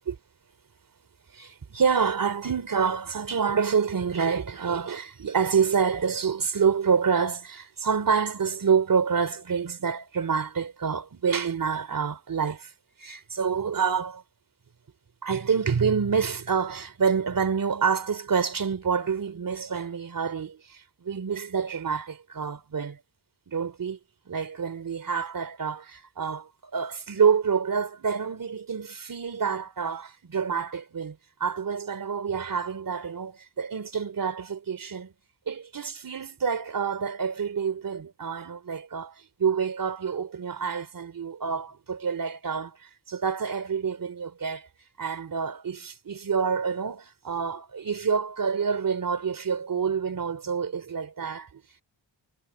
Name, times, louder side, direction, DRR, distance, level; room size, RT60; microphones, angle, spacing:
voice 1, 1.3-12.7 13.0-14.2 15.2-23.0 23.5-24.0 24.3-35.1 35.5-44.7 45.0-51.8, right 6 dB, 50° right, 3.1 m, -27 dB
wide cardioid pair, 110°, 44 cm